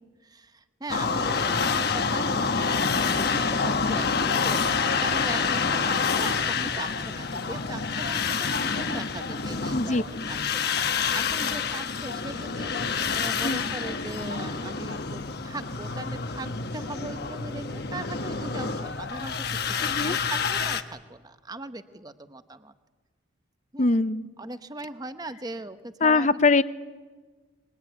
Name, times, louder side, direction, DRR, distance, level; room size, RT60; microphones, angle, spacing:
voice 1, 0.2-19.5 19.8-22.7 23.7-23.9 24.4-26.4, right 2 dB, 20° right, 10 dB, 0.9 m, -39 dB
sound 1, 0.9-20.8, left 5 dB, 55° left, 1.2 m, -27 dB
voice 2, 9.7-10.0 13.4-13.7 19.9-20.2 23.8-24.3 26.0-26.6, left 3 dB, 40° left, 14 dB, 0.7 m, -22 dB
25.0 x 22.0 x 9.2 m, 1.4 s
head